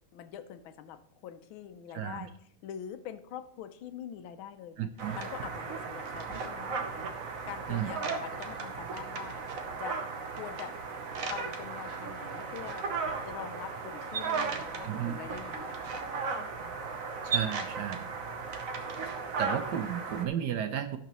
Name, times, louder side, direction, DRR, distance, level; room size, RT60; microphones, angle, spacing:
voice 1, 0.1-2.3 2.6-6.8 7.5-9.4 9.8-10.0 10.4-10.8 11.3-12.8 13.3-16.0, left 9 dB, 85° left, 11 dB, 1.5 m, -44 dB
voice 2, 1.9-2.3 4.8-5.2 7.7-7.9 14.8-15.2 17.3-18.1 19.4-21.0, right 10 dB, 70° right, 9 dB, 1.1 m, -33 dB
sound 1, 5.0-20.3, right 5 dB, 50° right, 1.1 m, -36 dB
17.0 x 5.9 x 3.0 m, 0.69 s
omnidirectional pair, 2.2 m